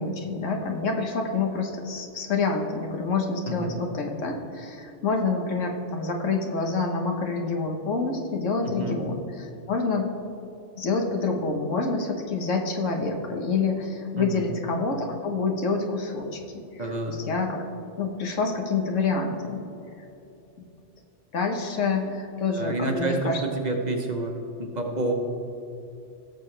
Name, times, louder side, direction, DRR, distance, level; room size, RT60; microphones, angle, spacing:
voice 1, 0.0-10.1 10.8-16.4 16.7-17.6 18.0-19.6 21.3-23.4, left 4 dB, 90° left, 3 dB, 1.5 m, -27 dB
voice 2, 8.6-9.0 14.2-14.4 16.8-17.2 22.6-24.3 24.6-25.1, right 2 dB, 40° right, 2 dB, 1.0 m, -29 dB
17.0 x 6.8 x 3.3 m, 2.8 s
omnidirectional pair, 1.2 m